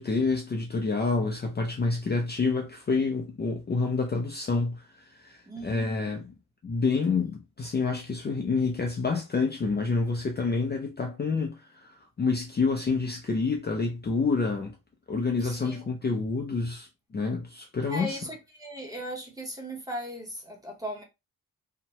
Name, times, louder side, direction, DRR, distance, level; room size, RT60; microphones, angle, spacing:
voice 1, 0.0-6.3 6.6-14.7 15.1-16.9 17.1-18.2, left 4 dB, 30° left, 0.4 m, -28 dB
voice 2, 5.5-6.2 15.4-15.8 17.9-21.0, equal, 10° right, 0.9 m, -38 dB
2.8 x 2.1 x 2.9 m
wide cardioid pair, 130°, 36 cm